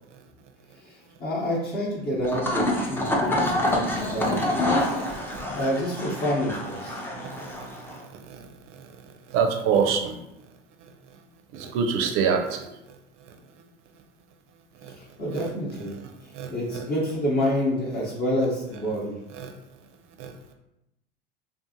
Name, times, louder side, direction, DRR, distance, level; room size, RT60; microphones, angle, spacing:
voice 1, 0.8-4.7 5.5-7.0 14.9-15.9 16.2-19.1, equal, 35° left, -5 dB, 0.9 m, -28 dB
sound 1, 2.2-8.0, left 1 dB, 5° left, 0.4 m, -27 dB
voice 2, 3.3-5.5 7.1-8.9 9.3-10.2 10.8-11.2 11.5-13.3 14.8-15.0 15.3-15.5 15.9-16.8 19.3-19.5 20.2-20.5, right 6 dB, 45° right, 5 dB, 0.5 m, -29 dB
2.5 x 2.4 x 2.7 m, 0.87 s
hypercardioid pair, 75°, 29 cm